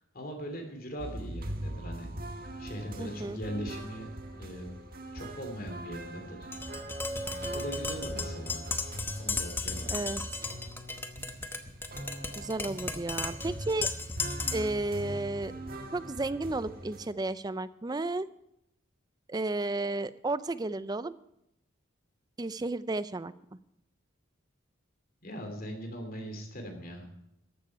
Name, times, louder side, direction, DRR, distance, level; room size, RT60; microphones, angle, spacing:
voice 1, 0.1-2.1 2.6-4.1 4.4-4.8 5.1-6.9 7.5-8.6 9.2-9.9 25.2-27.0, equal, 45° left, 4 dB, 2.8 m, -40 dB
sound 1, 1.0-17.1, right 1 dB, 45° right, 1.7 m, -42 dB
voice 2, 3.0-3.4 9.9-10.2 12.4-13.9 14.5-15.5 15.9-18.3 19.3-21.1 22.4-23.3, right 2 dB, 20° right, 15 dB, 0.4 m, -33 dB
Tap, 6.5-14.8, left 3 dB, 10° left, 0.9 m, -35 dB
14.5 x 11.5 x 4.7 m, 0.82 s
head